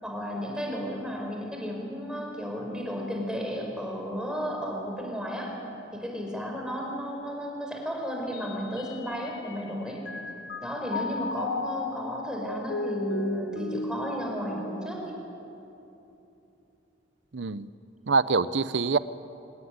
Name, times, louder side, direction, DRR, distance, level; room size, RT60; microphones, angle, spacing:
voice 1, 0.0-5.5 5.9-10.0 10.6-15.1, equal, 5° right, 0 dB, 5.2 m, -33 dB
Mallet percussion, 8.3-9.7 10.0-15.5, left 2 dB, 70° left, 1.2 m, -36 dB
voice 2, 17.3-17.7 18.1-19.0, right 4 dB, 85° right, 15 dB, 0.8 m, -25 dB
25.0 x 19.0 x 9.7 m, 2.9 s
head